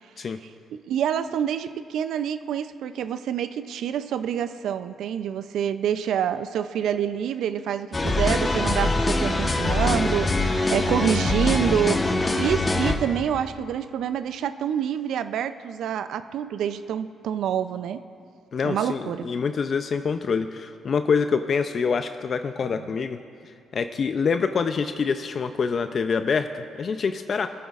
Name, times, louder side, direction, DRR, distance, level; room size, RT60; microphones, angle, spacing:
voice 1, 0.7-18.0 18.6-19.3, right 9 dB, 75° right, 11 dB, 0.4 m, -27 dB
sound 1, 7.9-13.0, left 2 dB, 25° left, 1.0 m, -23 dB
voice 2, 18.5-23.2 23.5-27.5, left 5 dB, 50° left, 9 dB, 0.4 m, -26 dB
23.5 x 9.3 x 2.4 m, 2.4 s
cardioid pair, 90°, 0 cm